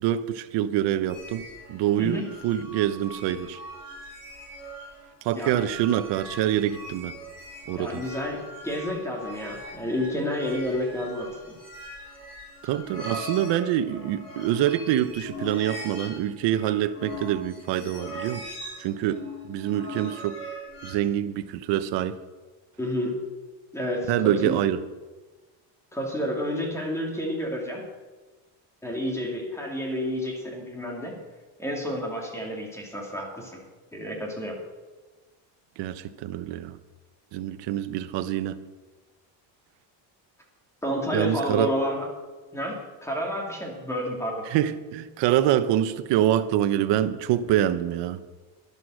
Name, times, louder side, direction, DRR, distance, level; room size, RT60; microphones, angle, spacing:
voice 1, 0.0-3.6 5.2-7.1 7.7-8.0 12.6-18.4 18.8-20.4 20.8-22.1 24.1-24.8 35.8-36.8 37.3-38.6 41.1-41.7 44.5-48.2, right 11 dB, 70° right, 11 dB, 1.0 m, -25 dB
sound 1, 1.1-20.9, equal, 35° left, 4.5 m, -41 dB
voice 2, 2.0-2.3 5.3-5.7 7.7-11.6 22.8-23.2 23.7-24.6 25.9-27.8 28.8-31.2 31.6-33.6 33.9-34.6 40.8-42.1 42.5-44.5, equal, 5° left, 0 dB, 2.7 m, -30 dB
11.5 x 11.0 x 6.4 m, 1.3 s
cardioid pair, 155°, 45 cm